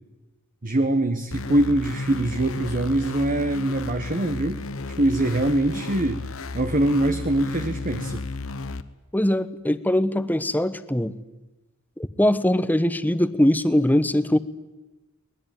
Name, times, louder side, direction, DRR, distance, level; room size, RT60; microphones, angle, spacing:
voice 1, 0.6-4.6 5.0-6.2 6.5-8.2, right 1 dB, 40° right, 8 dB, 1.3 m, -23 dB
sound 1, 1.3-8.8, left 3 dB, 80° left, 1.1 m, -33 dB
voice 2, 9.1-11.1 12.0-14.4, left 1 dB, 10° left, 14 dB, 0.9 m, -21 dB
22.5 x 20.0 x 9.3 m, 1.1 s
head